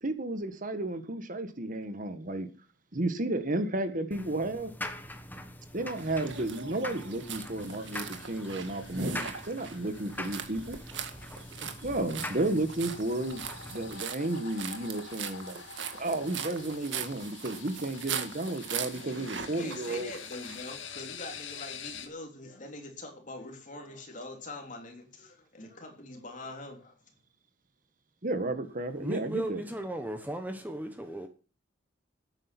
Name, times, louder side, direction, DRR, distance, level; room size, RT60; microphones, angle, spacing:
voice 1, 0.0-2.5 2.9-4.7 5.7-9.2 9.5-10.8 11.6-13.4 13.7-15.6 16.0-20.1 28.2-29.6, right 2 dB, 45° right, 9 dB, 1.7 m, -32 dB
sound 1, 4.1-14.0, left 1 dB, 10° left, 1.4 m, -43 dB
sound 2, 6.0-20.7, right 6 dB, 70° right, 1.8 m, -40 dB
sound 3, 7.6-22.1, left 7 dB, 85° left, 2.1 m, -48 dB
voice 2, 19.4-27.0, left 2 dB, 45° left, 4 dB, 3.5 m, -43 dB
voice 3, 29.0-31.3, right 1 dB, 10° right, 6 dB, 1.2 m, -36 dB
12.5 x 9.1 x 6.1 m, 0.36 s
head